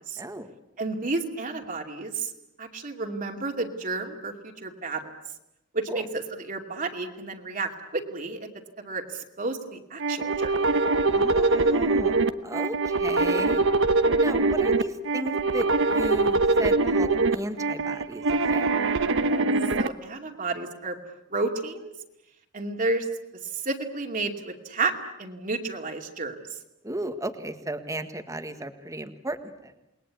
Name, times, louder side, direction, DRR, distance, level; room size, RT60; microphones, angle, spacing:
voice 1, 0.2-0.5 5.9-6.0 11.1-12.1 12.4-13.6 14.2-18.2 18.5-19.0 26.8-29.7, right 1 dB, 15° right, 8 dB, 1.7 m, -35 dB
voice 2, 0.8-2.3 2.6-5.1 5.7-8.5 8.8-10.5 19.2-19.5 19.8-21.0 21.3-21.9 22.5-23.1 23.5-24.9 25.2-26.3, right 3 dB, 40° right, 2 dB, 2.6 m, -31 dB
sound 1, 10.0-19.9, right 3 dB, 65° right, 1.1 m, -23 dB
28.5 x 21.0 x 8.3 m, 0.89 s
head